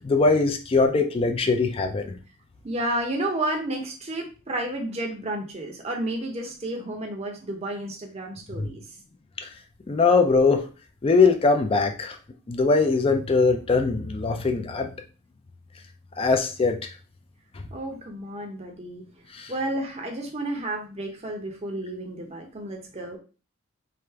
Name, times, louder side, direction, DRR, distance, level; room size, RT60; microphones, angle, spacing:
voice 1, 0.0-2.1 8.6-8.7 9.4-9.5 9.9-10.6 11.0-12.2 12.5-14.9 16.2-16.8 19.3-19.5, left 4 dB, 25° left, 6 dB, 0.4 m, -21 dB
voice 2, 2.6-8.8 17.7-19.0 19.5-23.2, right 1 dB, 30° right, 2 dB, 0.6 m, -31 dB
3.4 x 2.4 x 4.5 m, 0.35 s
head